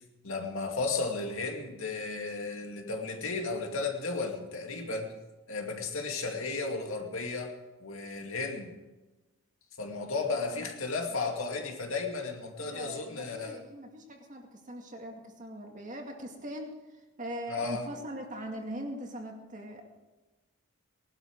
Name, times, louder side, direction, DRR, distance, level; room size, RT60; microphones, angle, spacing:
voice 1, 0.2-5.1 5.5-7.5 7.8-8.7 9.8-13.6 17.5-17.9, left 3 dB, 70° left, 3 dB, 2.2 m, -34 dB
voice 2, 10.1-10.9 11.3-11.4 12.6-19.8, equal, 35° right, 2 dB, 2.2 m, -41 dB
19.5 x 12.0 x 4.7 m, 1.1 s
head